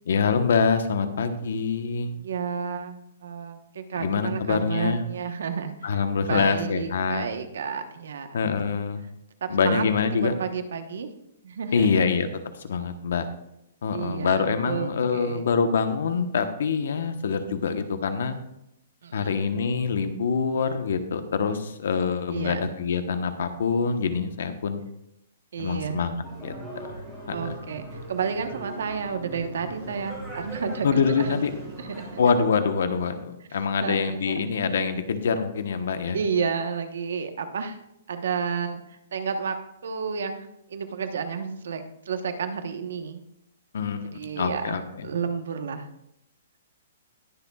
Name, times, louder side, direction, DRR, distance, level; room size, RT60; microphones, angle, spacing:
voice 1, 0.1-2.1 4.0-5.0 5.8-7.3 8.3-9.0 9.5-10.3 11.7-12.3 12.6-13.3 13.8-18.4 19.1-24.8 25.6-27.0 27.3-27.6 30.8-31.5 32.2-36.2 43.7-44.0 44.4-45.1, left 5 dB, 65° left, 9 dB, 1.1 m, -25 dB
voice 2, 2.2-8.4 9.4-9.8 10.2-11.1 11.4-12.0 13.9-15.4 19.0-19.4 22.3-22.6 25.5-26.0 27.3-31.3 31.8-32.2 33.8-34.3 36.1-37.8 38.1-39.6 39.8-43.2 44.1-45.8, right 6 dB, 70° right, 7 dB, 1.1 m, -31 dB
sound 1, 26.2-32.4, right 1 dB, ahead, 3.1 m, -39 dB
20.0 x 6.9 x 2.4 m, 0.81 s
hypercardioid pair, 175°, 0 cm